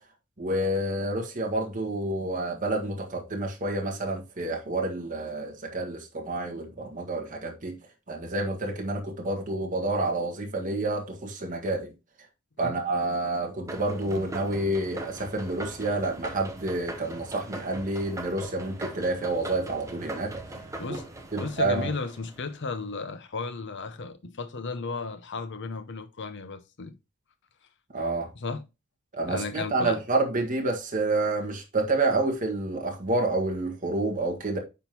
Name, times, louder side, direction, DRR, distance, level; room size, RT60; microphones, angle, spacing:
voice 1, 0.4-7.8 8.1-11.9 12.6-20.5 20.9-21.0 21.3-21.9 27.9-28.3 29.1-34.6, right 2 dB, 40° right, 1.6 m, -29 dB
sound 1, 13.7-22.8, right 1 dB, 15° right, 1.0 m, -40 dB
voice 2, 21.4-27.0 28.4-28.6 29.3-30.0, left 4 dB, 60° left, 0.8 m, -34 dB
10.0 x 3.8 x 2.9 m
head